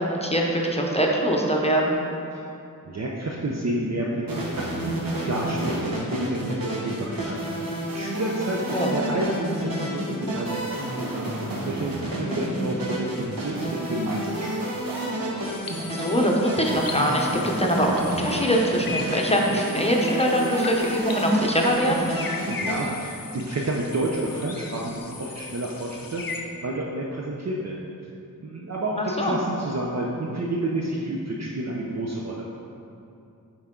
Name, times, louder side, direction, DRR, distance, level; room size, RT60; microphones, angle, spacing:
voice 1, 0.0-2.0 8.7-8.9 12.5-12.6 15.9-22.1 29.0-29.4, equal, 20° left, -1 dB, 0.8 m, -23 dB
voice 2, 2.8-4.6 5.2-11.2 11.6-14.5 22.4-27.7 28.4-32.5, right 1 dB, 50° right, -3 dB, 0.6 m, -30 dB
sound 1, 4.3-22.9, right 1 dB, 80° right, 1.2 m, -30 dB
sound 2, 15.4-26.4, left 4 dB, 80° left, 0.7 m, -38 dB
7.9 x 4.6 x 3.8 m, 2.6 s
wide cardioid pair, 75°, 34 cm